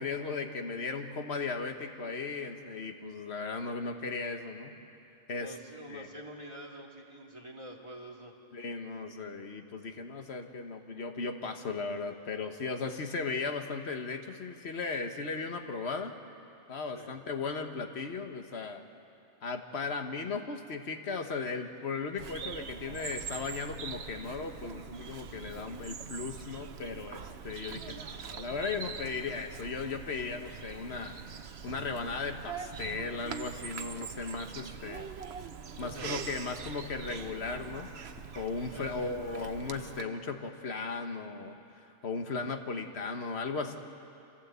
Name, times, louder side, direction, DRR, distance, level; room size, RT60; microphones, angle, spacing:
voice 1, 0.0-4.7 5.3-5.5 5.9-6.1 8.5-16.2 16.7-18.8 19.4-31.2 31.6-35.1 35.8-37.9 38.3-41.6 42.0-43.8, left 4 dB, 55° left, 6 dB, 1.5 m, -36 dB
voice 2, 5.3-8.3 16.9-17.2 35.8-36.1 38.7-39.2, right 1 dB, 25° right, -1 dB, 2.3 m, -46 dB
Bird vocalization bird call bird song, 22.2-40.0, right 6 dB, 60° right, 1.1 m, -43 dB
26.5 x 16.0 x 8.2 m, 2.8 s
omnidirectional pair, 1.3 m